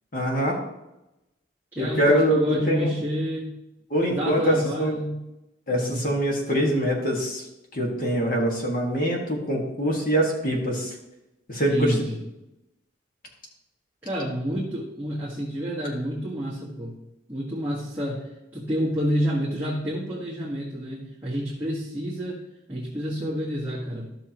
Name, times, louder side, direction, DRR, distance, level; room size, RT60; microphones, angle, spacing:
voice 1, 0.1-0.6 1.8-2.9 3.9-5.0 5.7-7.4 7.7-10.9 11.5-12.0, equal, 45° left, -1 dB, 1.8 m, -24 dB
voice 2, 1.7-3.5 4.1-5.2 5.7-6.0 11.7-12.2 14.0-17.0 17.3-22.4 22.7-24.1, equal, 10° right, -7 dB, 1.5 m, -29 dB
13.0 x 6.4 x 3.0 m, 0.92 s
head